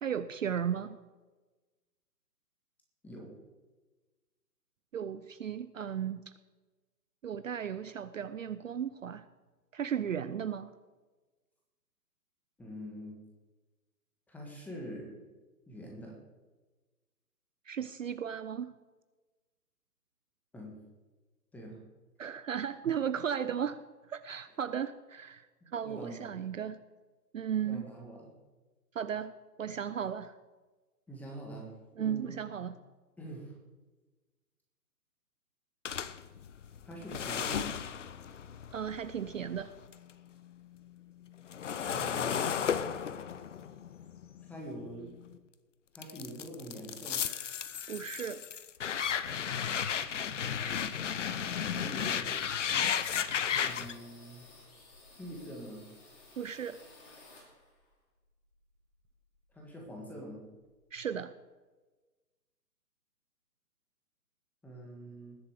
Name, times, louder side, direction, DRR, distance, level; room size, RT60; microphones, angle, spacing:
voice 1, 0.0-1.0 4.9-6.2 7.2-9.3 9.7-10.7 17.7-18.7 22.2-23.8 24.1-26.8 27.3-27.9 28.9-29.3 29.6-30.3 32.0-32.7 38.7-39.7 47.9-48.4 56.4-56.8 60.9-61.3, right 8 dB, 55° right, 13 dB, 0.6 m, -35 dB
voice 2, 3.0-3.3 12.6-13.1 14.3-15.2 15.7-16.1 20.5-20.8 21.5-21.8 25.8-26.4 27.6-28.3 31.1-31.7 32.0-32.5 33.2-33.5 36.8-37.6 41.9-42.6 44.5-45.1 45.9-47.2 51.4-52.4 53.6-54.5 55.2-55.8 59.5-60.4 64.6-65.4, right 1 dB, 5° left, -1 dB, 1.7 m, -44 dB
sound 1, 35.8-40.1 40.5-45.4 45.9-53.9, left 8 dB, 50° left, 0.7 m, -34 dB
sound 2, 53.6-57.9 58.3-59.6 59.9-60.0 60.3-61.0, left 2 dB, 20° left, 2.9 m, -57 dB
20.0 x 7.4 x 5.0 m, 1.2 s
figure-of-eight pair, 145°, 48 cm